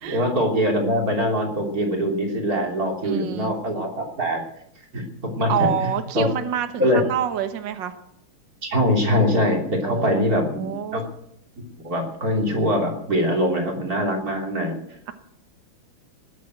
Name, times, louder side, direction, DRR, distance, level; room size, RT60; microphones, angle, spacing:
voice 1, 0.0-4.4 4.9-6.3 6.8-7.0 8.6-11.0 11.8-14.8, equal, 45° right, 1 dB, 3.8 m, -23 dB
voice 2, 3.0-3.6 5.5-7.9 9.8-11.0, right 9 dB, 65° right, 9 dB, 1.8 m, -27 dB
19.5 x 8.5 x 8.0 m, 0.72 s
omnidirectional pair, 2.3 m